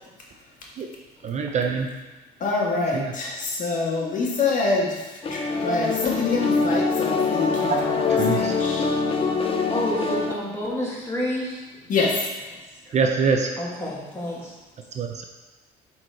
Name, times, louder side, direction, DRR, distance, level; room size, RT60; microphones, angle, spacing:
voice 1, 1.2-1.9 2.9-3.1 8.1-8.5 12.9-13.5 15.0-15.2, right 5 dB, 45° right, 3 dB, 0.7 m, -24 dB
voice 2, 2.4-8.8 11.9-12.3, left 3 dB, 50° left, -3 dB, 1.7 m, -26 dB
sound 1, 5.2-10.3, left 4 dB, 35° left, 0.7 m, -24 dB
voice 3, 9.7-11.9 12.5-12.6 12.8-13.0 13.6-14.5, left 1 dB, 15° left, -6 dB, 2.7 m, -30 dB
7.6 x 4.4 x 4.7 m, 1.1 s
cardioid pair, 110°, 17 cm